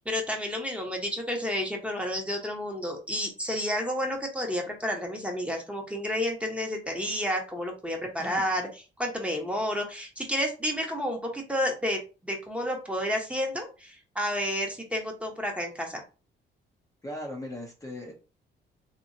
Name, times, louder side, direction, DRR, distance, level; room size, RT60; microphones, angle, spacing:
voice 1, 0.0-8.7 9.0-16.0, equal, 5° right, 1 dB, 1.0 m, -30 dB
voice 2, 8.2-8.5 17.0-18.1, left 1 dB, 15° left, -1 dB, 0.8 m, -38 dB
3.0 x 3.0 x 2.7 m, 0.33 s
cardioid pair, 90°, 20 cm